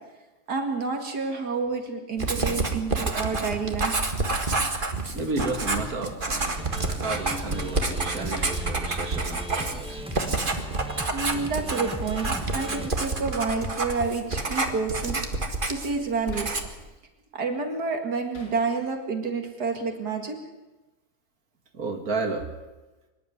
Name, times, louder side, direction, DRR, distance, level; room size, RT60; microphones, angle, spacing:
voice 1, 0.5-3.9 11.1-16.6 17.3-20.4, right 4 dB, 85° right, 4 dB, 2.6 m, -29 dB
Writing, 2.2-16.0 16.3-16.8, right 3 dB, 35° right, 1.9 m, -28 dB
Hammer, 2.4-2.7 4.3-4.6 6.4-6.7 8.4-8.6 10.3-10.6 12.2-12.5 14.3-14.6 16.3-16.6 18.3-18.6, left 1 dB, 75° left, 5.5 m, -43 dB
voice 2, 5.1-10.0 21.7-22.5, right 3 dB, 65° right, 3 dB, 2.5 m, -32 dB
sound 1, 6.6-12.9, right 1 dB, 5° right, 1.2 m, -37 dB
24.5 x 11.0 x 9.6 m, 1.1 s
omnidirectional pair, 1.7 m